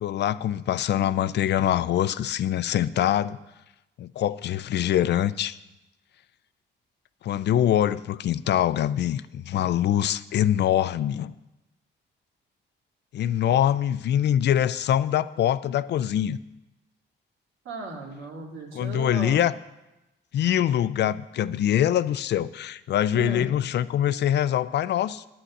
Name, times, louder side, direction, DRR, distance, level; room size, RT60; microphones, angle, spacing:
voice 1, 0.0-3.4 4.0-5.6 7.2-11.3 13.1-16.4 18.7-19.5 20.3-25.3, left 11 dB, 60° left, 16 dB, 0.4 m, -24 dB
voice 2, 17.6-19.4 23.1-23.5, right 2 dB, 85° right, -1 dB, 2.6 m, -35 dB
9.7 x 7.7 x 6.5 m, 0.98 s
cardioid pair, 90°, 20 cm